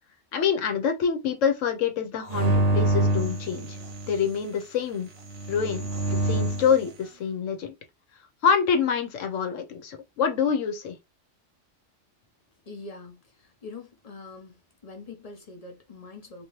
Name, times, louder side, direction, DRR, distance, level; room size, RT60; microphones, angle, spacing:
voice 1, 0.3-3.8 4.0-5.1 5.5-7.7 8.4-11.0, left 7 dB, 90° left, 1.1 m, -26 dB
sound 1, 2.3-4.3 5.3-6.8, right 1 dB, 55° right, 0.9 m, -26 dB
voice 2, 12.7-14.5 14.8-16.5, left 3 dB, 40° left, 0.6 m, -43 dB
2.8 x 2.6 x 3.0 m
omnidirectional pair, 1.3 m